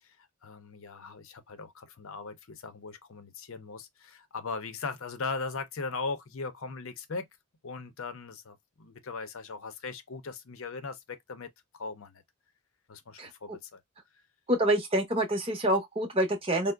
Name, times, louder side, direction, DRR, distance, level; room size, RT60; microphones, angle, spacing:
voice 1, 0.4-7.3 7.6-12.2 12.9-13.8, left 4 dB, 65° left, 0.6 m, -39 dB
voice 2, 14.5-16.7, right 1 dB, 25° right, 0.7 m, -26 dB
4.6 x 2.0 x 2.2 m
head